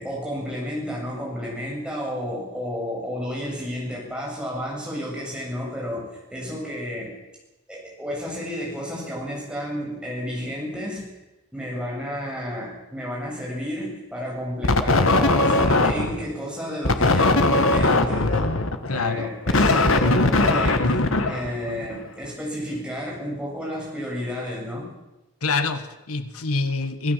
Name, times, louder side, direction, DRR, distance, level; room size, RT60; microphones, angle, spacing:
voice 1, 0.0-7.2 7.7-11.1 11.5-18.5 18.9-20.9 21.3-24.9, equal, 5° right, -3 dB, 7.8 m, -31 dB
sound 1, 14.6-16.3 16.8-22.0, left 2 dB, 65° left, 1.7 m, -20 dB
voice 2, 18.9-19.3 25.4-27.1, left 3 dB, 85° left, 10 dB, 1.5 m, -25 dB
26.5 x 16.0 x 7.6 m, 1.0 s
head